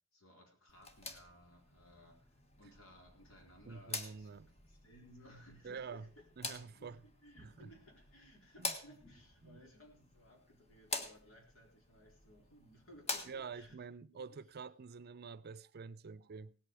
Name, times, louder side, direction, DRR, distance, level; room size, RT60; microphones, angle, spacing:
voice 1, 0.1-6.3 6.8-13.8 14.2-14.3, equal, 90° left, 4.1 m, -60 dB
sound 1, 0.7-13.7, left 3 dB, 30° left, 1.4 m, -47 dB
voice 2, 3.7-4.5 5.6-6.1 6.4-7.0 7.4-7.7 8.6-8.7 9.4-9.6 13.3-16.6, right 5 dB, 50° right, 0.5 m, -47 dB
17.5 x 8.4 x 4.7 m
head